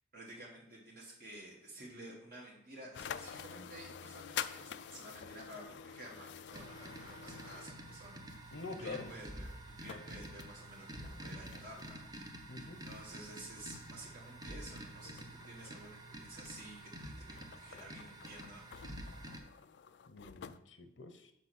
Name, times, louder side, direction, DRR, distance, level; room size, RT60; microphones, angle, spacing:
voice 1, 0.1-8.5 8.8-18.6, right 1 dB, 50° right, -3 dB, 1.3 m, -52 dB
sound 1, 2.9-12.2 12.8-20.6, left 8 dB, 70° left, 0.4 m, -49 dB
sound 2, 6.5-19.4, right 1 dB, 20° right, 0.8 m, -49 dB
voice 2, 8.5-9.2 12.5-12.8 20.1-21.3, left 3 dB, 85° left, 8 dB, 0.8 m, -46 dB
5.9 x 5.1 x 6.1 m, 0.76 s
head